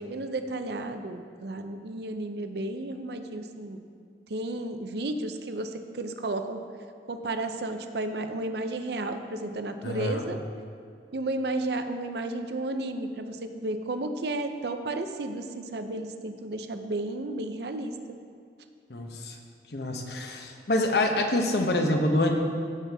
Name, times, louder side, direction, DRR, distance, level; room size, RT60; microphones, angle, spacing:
voice 1, 0.0-3.8 4.3-6.6 7.1-10.4 11.1-17.9, right 2 dB, 65° right, 7 dB, 0.6 m, -33 dB
voice 2, 9.8-10.2 18.9-19.4 19.7-22.4, left 1 dB, 65° left, 3 dB, 0.9 m, -26 dB
16.0 x 5.8 x 3.5 m, 2.3 s
head